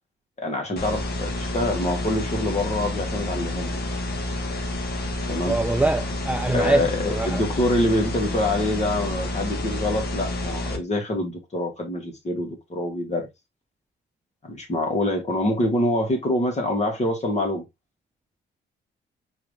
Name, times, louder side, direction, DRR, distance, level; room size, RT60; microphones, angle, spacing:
voice 1, 0.4-3.8 5.3-5.6 6.5-13.3 14.4-17.6, left 1 dB, 35° left, 2.2 m, -25 dB
sound 1, 0.8-10.8, left 1 dB, 50° left, 1.5 m, -29 dB
voice 2, 5.5-7.4, right 2 dB, 5° right, 0.5 m, -24 dB
4.8 x 3.4 x 3.3 m
cardioid pair, 90°, 20 cm